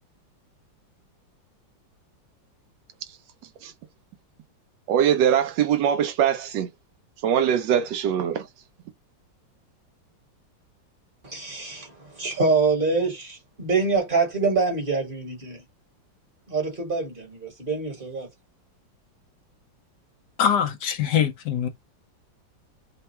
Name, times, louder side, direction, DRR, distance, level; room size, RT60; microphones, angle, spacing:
voice 1, 4.9-6.7 7.2-8.5, right 9 dB, 75° right, 1.2 m, -22 dB
voice 2, 11.2-15.6 16.5-18.3, right 4 dB, 30° right, 1.4 m, -25 dB
voice 3, 20.4-21.7, left 9 dB, 70° left, 1.2 m, -23 dB
3.5 x 2.3 x 4.2 m
omnidirectional pair, 2.0 m